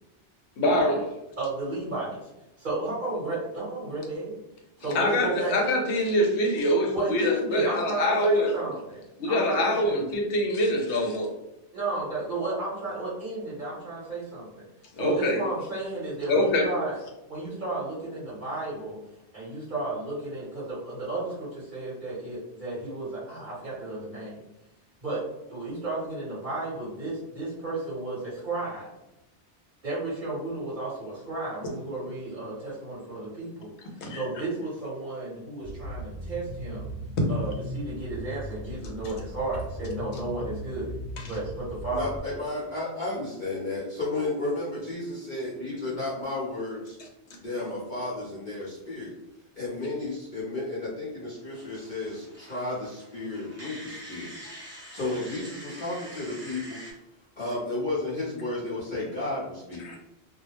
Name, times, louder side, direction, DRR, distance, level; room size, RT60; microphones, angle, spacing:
voice 1, 0.6-1.0 4.9-8.5 9.2-11.3 14.9-15.4 16.3-16.7 34.0-34.2 59.8-60.1, left 1 dB, 70° left, 1 dB, 0.9 m, -24 dB
voice 2, 1.4-2.3 2.6-4.4 4.8-5.6 6.9-10.0 11.7-14.7 14.9-17.0 17.3-19.0 19.3-24.4 25.0-25.2 25.5-28.9 29.8-33.7 34.1-36.9 37.3-40.9 41.2-42.1, right 2 dB, 45° right, -8 dB, 1.0 m, -33 dB
sound 1, 35.6-42.2, right 1 dB, 70° right, 0.8 m, -38 dB
voice 3, 41.9-47.0 47.4-49.1 49.6-54.3 54.9-56.8 57.4-59.8, left 2 dB, 50° left, -8 dB, 0.8 m, -33 dB
sound 2, 51.5-56.9, equal, 15° right, 0.6 m, -45 dB
2.4 x 2.0 x 2.9 m, 0.90 s
omnidirectional pair, 1.2 m